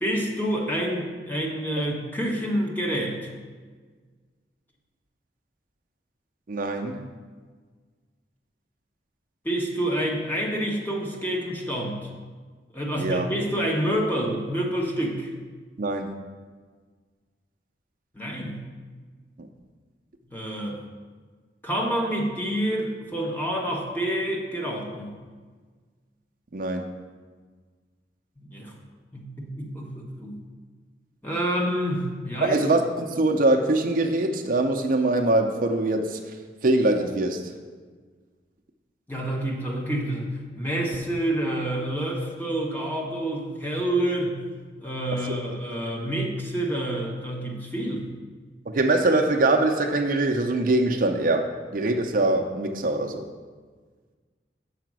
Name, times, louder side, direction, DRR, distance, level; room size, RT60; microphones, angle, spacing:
voice 1, 0.0-3.3 9.4-12.1 12.7-15.3 18.1-18.6 20.3-20.8 21.6-25.1 28.4-28.8 29.1-30.4 31.2-32.6 39.1-44.4 44.8-48.1, right 1 dB, 10° left, -1 dB, 0.9 m, -28 dB
voice 2, 6.5-7.1 12.9-13.3 15.8-16.1 19.4-19.5 26.5-27.0 32.4-37.5 45.1-45.3 48.7-53.3, right 2 dB, 50° right, 3 dB, 0.5 m, -23 dB
6.7 x 4.9 x 6.1 m, 1.5 s
head